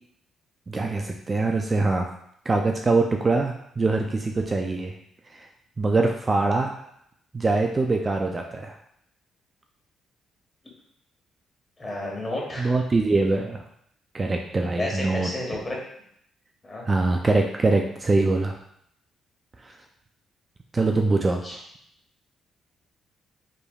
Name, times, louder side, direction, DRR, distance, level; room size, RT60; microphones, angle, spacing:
voice 1, 0.7-2.1 2.5-4.9 5.3-5.5 5.8-6.7 7.3-8.7 12.6-13.6 14.1-15.3 16.9-18.5 19.6-19.8 20.7-21.6, right 3 dB, 30° right, 2 dB, 0.4 m, -23 dB
voice 2, 11.8-12.7 14.5-15.8 16.6-16.8 21.4-21.6, left 1 dB, 25° left, -2 dB, 1.4 m, -32 dB
4.9 x 3.3 x 2.3 m, 0.71 s
cardioid pair, 90°, 0 cm